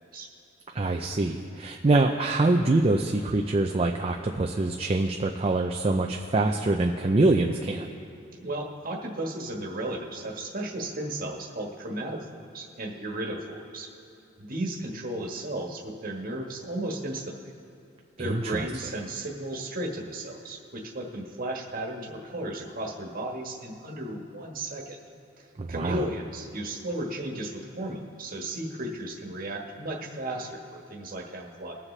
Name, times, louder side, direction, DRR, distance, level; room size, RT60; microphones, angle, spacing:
voice 1, 0.7-7.9 18.2-18.7 25.6-26.0, right 2 dB, 30° right, 2 dB, 0.4 m, -25 dB
voice 2, 8.4-12.2 12.5-13.9 14.4-17.3 18.2-25.0 25.4-31.7, right 1 dB, 45° right, 0 dB, 1.4 m, -34 dB
21.5 x 7.3 x 3.3 m, 2.9 s
head